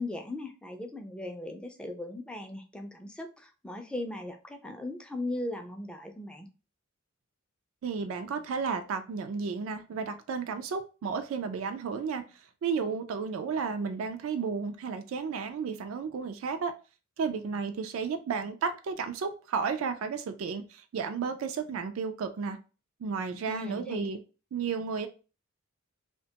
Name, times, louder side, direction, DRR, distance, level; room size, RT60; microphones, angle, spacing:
voice 1, 0.0-6.5 23.5-24.1, left 1 dB, 5° left, 0.3 m, -38 dB
voice 2, 7.8-12.2 12.6-16.7 17.2-22.6 23.0-24.2 24.5-25.1, right 5 dB, 75° right, 0.3 m, -33 dB
2.8 x 2.2 x 2.8 m
head